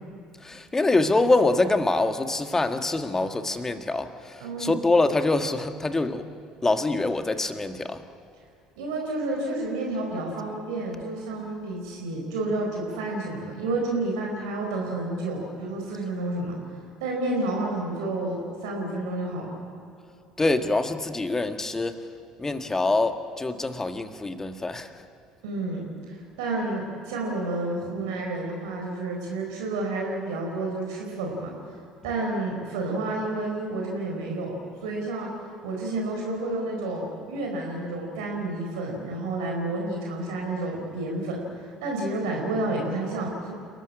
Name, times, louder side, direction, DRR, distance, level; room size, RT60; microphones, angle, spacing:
voice 1, 0.4-6.3 6.6-8.0 20.4-22.1 22.4-25.0, left 2 dB, 15° left, 8 dB, 1.7 m, -25 dB
voice 2, 4.4-4.8 8.8-16.5 17.0-19.5 25.4-31.5 32.0-34.5 34.8-35.3 35.6-43.5, right 2 dB, 65° right, -1 dB, 4.5 m, -30 dB
29.5 x 14.0 x 9.9 m, 2.6 s
figure-of-eight pair, 60°, 3 cm